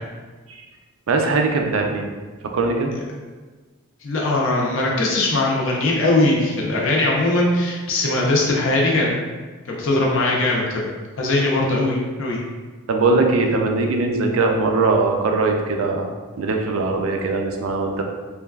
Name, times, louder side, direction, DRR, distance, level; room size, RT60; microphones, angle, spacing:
voice 1, 1.1-2.1 2.5-2.9 12.9-16.1 16.4-18.0, right 3 dB, 85° right, 3 dB, 0.4 m, -20 dB
voice 2, 4.0-9.1 9.7-10.8 11.2-12.4, left 2 dB, 70° left, -2 dB, 0.6 m, -20 dB
3.2 x 2.3 x 2.3 m, 1.3 s
head